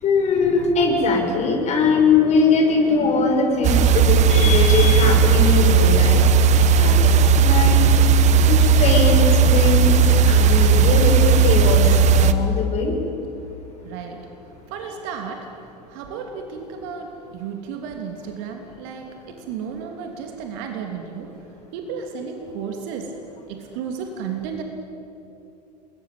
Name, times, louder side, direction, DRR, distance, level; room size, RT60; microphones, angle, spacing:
voice 1, 0.0-6.2 6.6-7.8 8.5-10.0 10.3-13.0, left 4 dB, 35° left, 2 dB, 6.0 m, -21 dB
sound 1, 3.6-12.3, right 5 dB, 35° right, 1.4 m, -15 dB
voice 2, 13.8-21.5 21.7-23.1 23.5-24.6, right 6 dB, 50° right, 4 dB, 3.0 m, -33 dB
28.0 x 22.0 x 9.3 m, 3.0 s
figure-of-eight pair, 80°, 21 cm